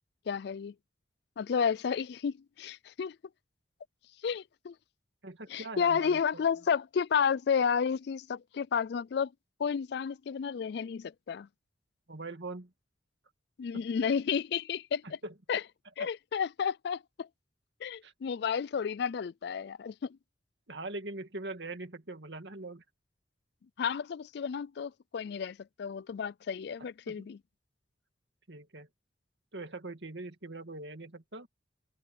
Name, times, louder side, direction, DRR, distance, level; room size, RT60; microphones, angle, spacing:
voice 1, 0.3-0.7 1.4-3.2 4.2-4.7 5.5-9.3 9.6-11.5 13.6-15.0 15.5-15.6 16.0-17.3 17.8-20.2 23.8-27.4, left 6 dB, 60° left, 0.3 m, -31 dB
voice 2, 5.2-6.4 12.1-12.7 13.7-13.8 15.0-15.3 16.0-16.1 18.0-18.1 20.7-22.8 27.1-27.3 28.5-28.9 29.5-31.5, right 2 dB, 65° right, 2.2 m, -42 dB
head